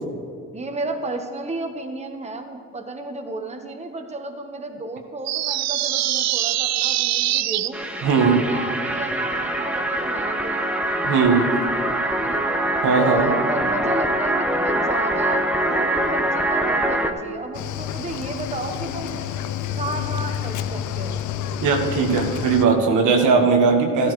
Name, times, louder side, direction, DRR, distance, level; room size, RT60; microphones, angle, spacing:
voice 1, 0.5-7.8 8.1-10.8 12.2-12.4 13.0-19.3 19.8-21.2, right 2 dB, 20° right, 4 dB, 1.2 m, -32 dB
sound 1, 5.3-7.7, right 14 dB, 65° right, 0.4 m, -23 dB
sound 2, 7.7-17.1, right 1 dB, 5° right, 0.9 m, -24 dB
voice 2, 8.0-8.4 11.0-11.5 12.8-13.3 21.6-24.1, right 5 dB, 85° right, 2 dB, 1.5 m, -18 dB
Cricket / Waves surf, 17.5-22.7, left 9 dB, 75° left, 0.6 m, -29 dB
13.0 x 13.0 x 3.2 m, 2.3 s
cardioid pair, 90°, 30 cm